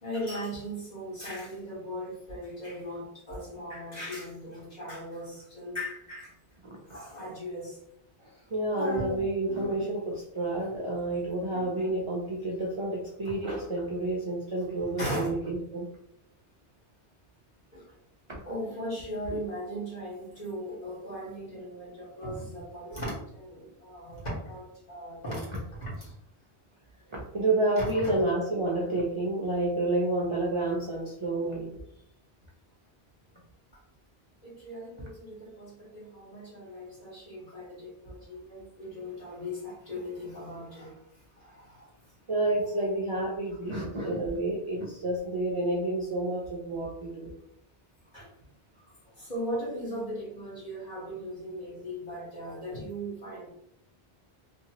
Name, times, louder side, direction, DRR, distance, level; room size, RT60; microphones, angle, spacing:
voice 1, 0.0-6.3 6.9-7.8 8.7-9.2 9.5-9.8 11.5-11.9 15.0-15.3 17.7-17.9 18.4-26.1 27.8-28.1 33.7-33.8 34.4-41.0 41.4-41.9 48.1-48.3 49.2-53.5, equal, 40° left, -6 dB, 1.4 m, -38 dB
voice 2, 8.2-15.9 18.3-18.9 19.3-19.4 22.8-23.0 27.1-31.8 35.0-35.1 42.3-47.3, right 2 dB, 45° right, -3 dB, 0.4 m, -30 dB
2.8 x 2.5 x 2.8 m, 0.76 s
omnidirectional pair, 1.1 m